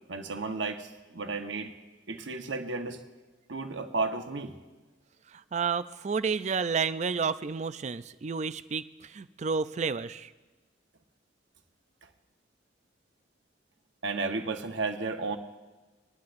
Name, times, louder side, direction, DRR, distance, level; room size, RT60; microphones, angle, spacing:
voice 1, 0.1-1.7 2.1-3.0 3.5-4.5 14.0-15.4, right 3 dB, 85° right, 6 dB, 1.0 m, -33 dB
voice 2, 5.5-10.3, right 5 dB, 40° right, 14 dB, 0.4 m, -30 dB
20.5 x 11.5 x 2.6 m, 1.3 s
head